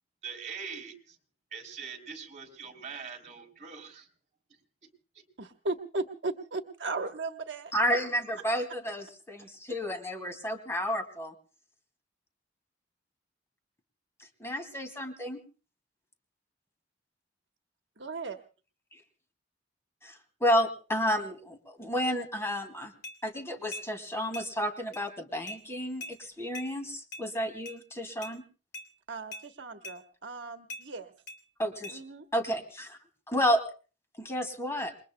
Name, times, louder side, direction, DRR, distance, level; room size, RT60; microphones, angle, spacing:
voice 1, 0.2-1.2 1.5-4.1, right 6 dB, 40° right, 2 dB, 3.6 m, -42 dB
voice 2, 5.4-7.7 18.0-18.4 29.1-31.1 31.9-32.2, right 3 dB, 70° right, 6 dB, 1.2 m, -36 dB
voice 3, 7.7-11.3 14.4-15.4 20.0-22.9 23.2-28.4 31.6-32.0 32.3-33.0 33.3-33.7 34.2-34.9, equal, 15° left, 5 dB, 2.4 m, -31 dB
sound 1, 23.0-23.2 23.7-23.9 24.3-24.5 24.9-25.0 25.5-25.6 26.0-26.2 26.5-26.7 27.1-27.3 27.7-27.8 28.2-28.4 28.7-28.9 29.3-29.5 29.8-30.0 30.7-30.8 31.3-31.4 31.8-32.0, left 1 dB, 60° left, 2.9 m, -41 dB
28.0 x 22.5 x 2.2 m, 0.37 s
head